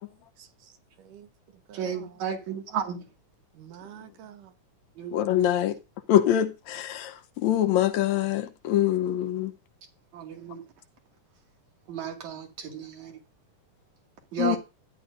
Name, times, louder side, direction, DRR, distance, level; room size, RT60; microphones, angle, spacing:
voice 1, 0.4-0.7 1.0-1.3 1.7-2.2 3.5-4.5, right 10 dB, 80° right, 2.9 m, -48 dB
voice 2, 1.7-3.0 5.0-5.2 10.1-10.6 11.9-13.2 14.3-14.6, right 8 dB, 65° right, 3.5 m, -33 dB
voice 3, 5.1-5.8 6.1-9.5 14.4-14.6, left 11 dB, 70° left, 2.0 m, -24 dB
14.5 x 11.0 x 2.6 m
omnidirectional pair, 3.7 m